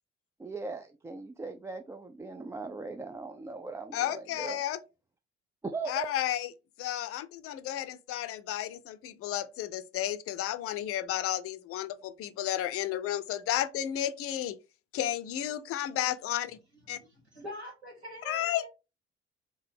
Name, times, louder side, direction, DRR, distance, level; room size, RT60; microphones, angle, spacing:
voice 1, 0.4-4.6 5.6-6.1, right 3 dB, 10° right, 0.3 m, -39 dB
voice 2, 3.9-4.8 5.9-6.5 6.8-14.6 14.9-16.6 16.9-17.0 18.3-18.7, left 12 dB, 45° left, 0.6 m, -32 dB
voice 3, 16.9-18.7, equal, 85° right, 1.8 m, -44 dB
3.9 x 3.8 x 3.3 m
figure-of-eight pair, 50°, 32 cm